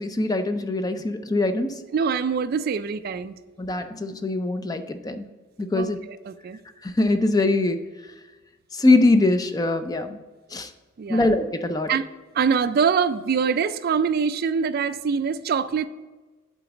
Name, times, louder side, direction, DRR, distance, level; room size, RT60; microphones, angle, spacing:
voice 1, 0.0-1.7 3.6-5.2 5.6-6.0 6.8-7.8 8.7-10.2 10.5-10.7 11.1-11.9, left 2 dB, 20° left, 9 dB, 0.4 m, -22 dB
voice 2, 1.9-3.3 5.7-6.6 11.0-11.3 11.9-12.0 12.3-15.9, right 6 dB, 50° right, 13 dB, 0.3 m, -24 dB
8.2 x 4.0 x 6.9 m, 1.3 s
head